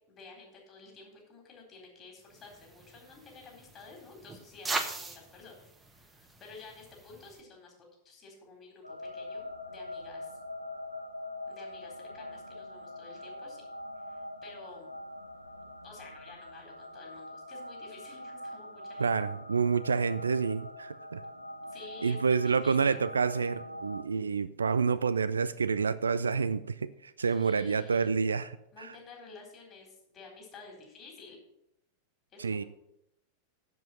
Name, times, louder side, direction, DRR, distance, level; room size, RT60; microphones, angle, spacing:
voice 1, 0.1-10.4 11.5-13.7 14.1-15.0 15.8-19.1 21.7-23.0 27.2-28.1 28.7-31.4 32.3-32.7, left 4 dB, 30° left, 0 dB, 4.0 m, -51 dB
sound 1, 2.3-7.4, right 3 dB, 10° right, 1.2 m, -41 dB
sound 2, 8.8-24.0, left 1 dB, 90° left, 0.8 m, -43 dB
voice 2, 19.0-21.2 22.0-28.5 32.4-32.6, right 5 dB, 75° right, 15 dB, 0.4 m, -28 dB
7.7 x 7.6 x 7.1 m, 0.82 s
figure-of-eight pair, 90°, 0 cm